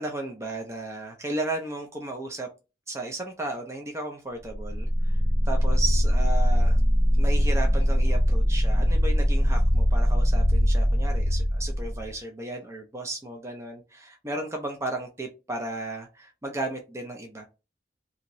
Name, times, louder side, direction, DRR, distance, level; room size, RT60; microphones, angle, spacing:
voice 1, 0.0-2.5 2.9-5.2 5.5-6.8 7.2-17.4, right 2 dB, 15° right, 2 dB, 0.4 m, -34 dB
sound 1, 4.5-12.2, equal, 70° right, 1.7 m, -22 dB
2.8 x 2.6 x 2.9 m, 0.28 s
head